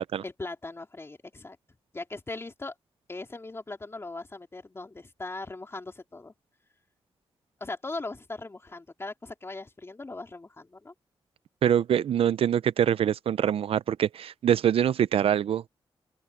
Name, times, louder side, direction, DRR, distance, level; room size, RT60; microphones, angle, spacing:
voice 1, 0.0-1.6 1.9-2.7 3.1-6.3 7.6-10.9, left 3 dB, 25° left, 3.3 m, -39 dB
voice 2, 11.6-15.7, right 9 dB, 80° right, 0.5 m, -24 dB
open air
wide cardioid pair, 100°, 10 cm